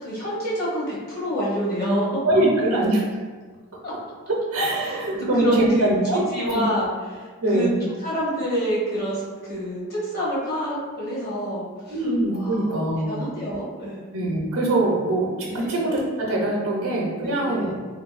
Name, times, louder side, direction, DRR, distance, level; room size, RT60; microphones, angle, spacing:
voice 1, 0.0-2.2 3.8-3.9 4.8-5.9 6.3-7.2 7.5-7.7 8.0-11.9 12.3-12.7 13.1-14.0 15.5-15.8 17.2-17.7, equal, 45° left, -6 dB, 0.9 m, -27 dB
voice 2, 2.2-3.0 4.3-6.3 6.5-6.6 7.4-7.8 11.9-13.2 14.1-17.8, right 1 dB, 80° right, -3 dB, 0.6 m, -23 dB
3.3 x 2.6 x 2.4 m, 1.5 s
head